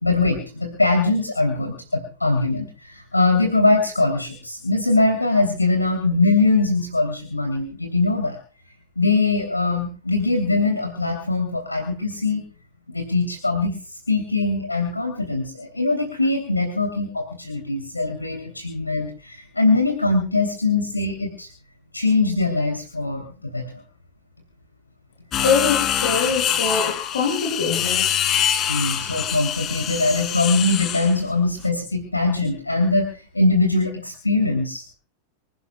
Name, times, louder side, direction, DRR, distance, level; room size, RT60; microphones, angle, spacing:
voice 1, 0.0-8.4 9.0-12.4 12.9-13.7 14.1-21.5 21.9-23.2 23.5-23.8 28.7-34.8, left 3 dB, 85° left, 4 dB, 2.9 m, -22 dB
sound 1, 25.3-31.2, left 9 dB, 30° left, 2.7 m, -24 dB
voice 2, 25.4-28.1, left 5 dB, 60° left, 5 dB, 5.7 m, -23 dB
26.0 x 17.5 x 2.3 m, 0.38 s
figure-of-eight pair, 90°, 0 cm